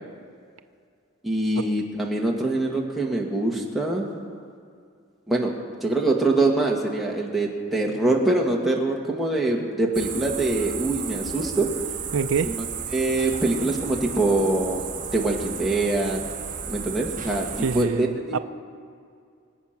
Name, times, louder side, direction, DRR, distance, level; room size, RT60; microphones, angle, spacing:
voice 1, 1.2-4.1 5.3-5.5 5.8-11.7 12.4-12.6 12.9-16.2 16.7-18.1, right 2 dB, ahead, -3 dB, 1.7 m, -24 dB
sound 1, 9.9-17.8, right 7 dB, 40° right, 1.4 m, -33 dB
voice 2, 12.1-12.5 17.6-18.4, right 5 dB, 75° right, 10 dB, 0.5 m, -26 dB
25.0 x 8.3 x 5.9 m, 2.3 s
head